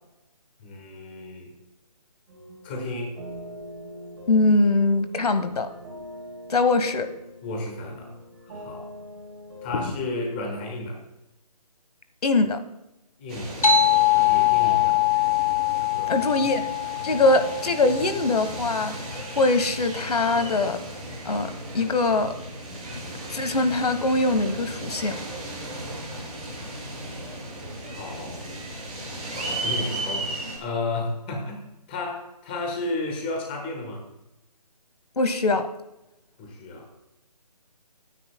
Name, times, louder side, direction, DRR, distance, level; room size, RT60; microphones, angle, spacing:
voice 1, 0.6-1.5 2.6-3.1 7.4-8.1 8.4-8.9 9.6-11.0 13.2-13.6 14.1-15.0 15.8-16.5 27.8-28.4 29.3-30.3 30.6-34.1 36.4-36.9, left 2 dB, 15° left, 2 dB, 1.3 m, -33 dB
sound 1, 2.3-10.1, left 1 dB, 20° right, 3.9 m, -42 dB
voice 2, 4.3-5.7 6.5-7.1 9.7-9.8 12.2-12.6 16.1-16.6 17.0-18.9 19.4-20.8 21.2-22.3 23.3-25.2 35.2-35.7, left 2 dB, 75° left, 10 dB, 1.3 m, -22 dB
sound 2, 13.3-30.6, right 1 dB, 5° right, 2.6 m, -35 dB
sound 3, 13.6-18.6, left 11 dB, 60° left, 1.3 m, -23 dB
19.5 x 9.9 x 2.2 m, 0.89 s
hypercardioid pair, 170°, 20 cm